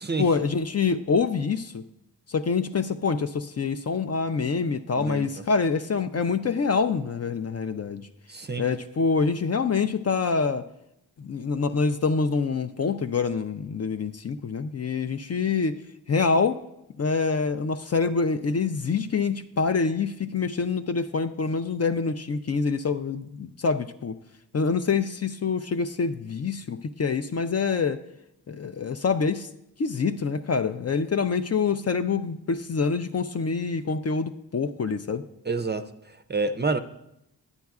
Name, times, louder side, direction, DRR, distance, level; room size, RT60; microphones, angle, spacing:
voice 1, 0.2-1.8 2.3-8.1 8.6-10.6 11.2-15.8 16.1-16.6 17.0-24.2 24.5-28.0 28.5-29.5 29.8-35.2, left 5 dB, 40° left, 0.4 m, -26 dB
voice 2, 5.0-5.3 8.3-8.6 35.5-36.8, right 3 dB, 25° right, 0.5 m, -28 dB
9.5 x 9.1 x 2.4 m
cardioid pair, 50°, 40 cm